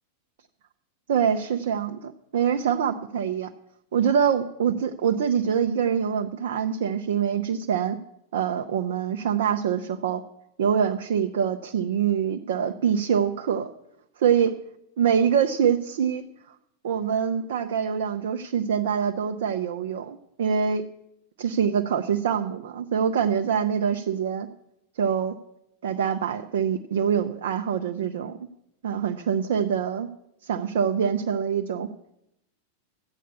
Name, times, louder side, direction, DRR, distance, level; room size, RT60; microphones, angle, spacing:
voice 1, 1.1-3.5 3.9-8.0 8.3-10.2 10.6-13.7 14.2-14.5 15.0-16.5 16.8-20.8 21.4-24.5 25.0-25.3 25.8-28.3 28.8-30.1 30.4-31.9, right 7 dB, 60° right, 5 dB, 0.6 m, -25 dB
13.5 x 8.4 x 6.9 m, 0.83 s
figure-of-eight pair, 90°, 0 cm